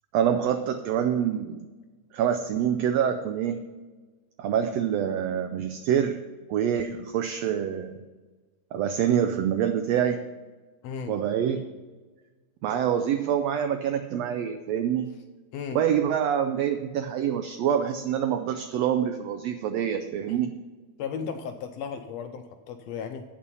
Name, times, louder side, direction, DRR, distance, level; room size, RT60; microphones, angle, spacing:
voice 1, 0.1-1.7 2.1-3.6 4.4-6.2 6.5-8.0 8.7-10.2 11.1-11.7 12.6-15.1 15.7-20.6, right 9 dB, 85° right, 7 dB, 1.5 m, -26 dB
voice 2, 10.8-11.1 15.5-15.8 21.0-23.2, left 6 dB, 80° left, 7 dB, 1.5 m, -35 dB
8.8 x 6.9 x 5.5 m, 1.3 s
omnidirectional pair, 3.6 m